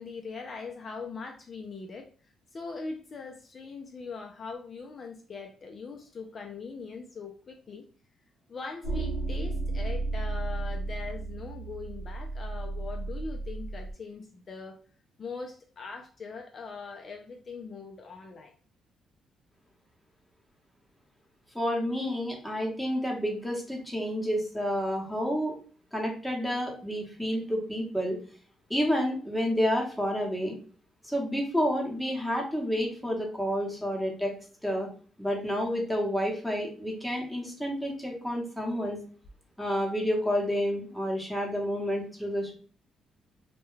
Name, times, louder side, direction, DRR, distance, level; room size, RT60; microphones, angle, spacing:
voice 1, 0.0-2.1 2.5-7.9 8.5-14.8 15.2-18.5, left 4 dB, 45° left, 2 dB, 0.4 m, -41 dB
sound 1, 8.8-13.9, right 2 dB, 90° right, 0.7 m, -33 dB
voice 2, 21.5-25.5 25.9-28.2 28.7-30.5 31.0-34.3 34.6-34.9 35.2-39.0 39.6-42.5, equal, ahead, -1 dB, 0.9 m, -29 dB
2.2 x 2.2 x 3.1 m, 0.41 s
cardioid pair, 90°, 0 cm